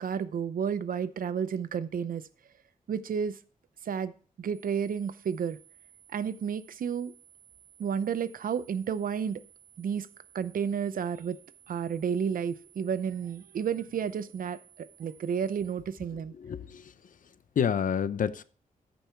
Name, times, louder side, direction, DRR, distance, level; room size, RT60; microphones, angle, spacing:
voice 1, 0.0-2.2 2.9-3.4 3.8-4.1 4.4-5.6 6.1-7.1 7.8-9.4 9.8-10.1 10.3-11.4 11.7-16.3, right 7 dB, 75° right, 0.6 m, -31 dB
sound 1, 4.5-15.7, right 10 dB, 40° right, 1.4 m, -58 dB
voice 2, 16.1-17.1 17.6-18.4, left 7 dB, 65° left, 0.6 m, -30 dB
13.5 x 5.5 x 4.4 m
wide cardioid pair, 145°, 15 cm